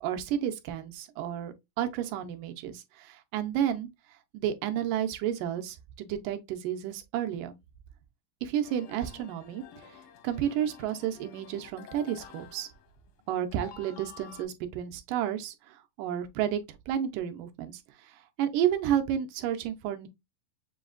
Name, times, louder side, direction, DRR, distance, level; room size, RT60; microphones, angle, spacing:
voice 1, 0.0-3.9 4.3-7.6 8.4-9.6 10.2-12.7 13.3-16.6 16.9-17.8 18.4-20.1, right 10 dB, 75° right, 2.2 m, -31 dB
sound 1, 8.6-13.2 13.5-14.4, left 7 dB, 85° left, 2.5 m, -50 dB
7.1 x 2.8 x 2.4 m
omnidirectional pair, 4.0 m